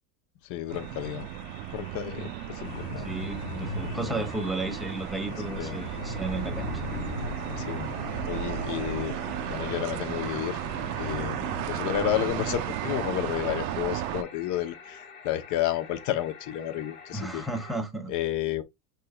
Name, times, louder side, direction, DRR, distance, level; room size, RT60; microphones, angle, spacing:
voice 1, 0.5-1.3 1.7-3.1 5.6-5.8 7.6-7.9 8.3-9.2 9.5-10.6 11.0-11.4 11.7-17.4 18.1-18.6, left 12 dB, 40° left, 0.7 m, -31 dB
sound 1, 0.7-17.8, left 5 dB, 25° left, 1.2 m, -48 dB
sound 2, 0.7-14.2, right 13 dB, 70° right, 0.6 m, -34 dB
sound 3, 2.6-13.8, left 3 dB, 75° left, 1.1 m, -39 dB
voice 2, 3.0-6.7 17.1-18.1, right 2 dB, ahead, 0.5 m, -33 dB
6.5 x 3.4 x 2.2 m
supercardioid pair, 140°, 46 cm